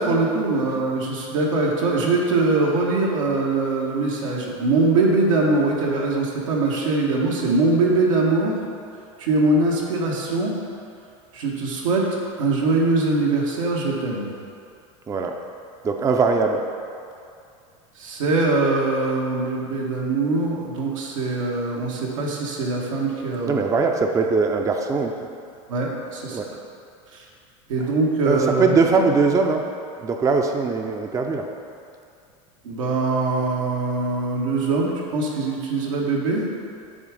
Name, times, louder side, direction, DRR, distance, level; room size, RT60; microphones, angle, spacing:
voice 1, 0.0-8.5 9.2-10.5 11.3-12.0 12.4-14.3 18.0-23.6 25.7-26.4 27.1-27.2 27.7-28.7 32.6-36.4, right 3 dB, 90° right, -3 dB, 1.3 m, -22 dB
voice 2, 15.8-16.6 23.4-25.1 26.3-26.5 27.8-27.9 28.3-29.7 30.0-31.5, right 4 dB, 20° right, 3 dB, 0.5 m, -21 dB
7.1 x 3.6 x 5.0 m, 2.4 s
supercardioid pair, 110°, 16 cm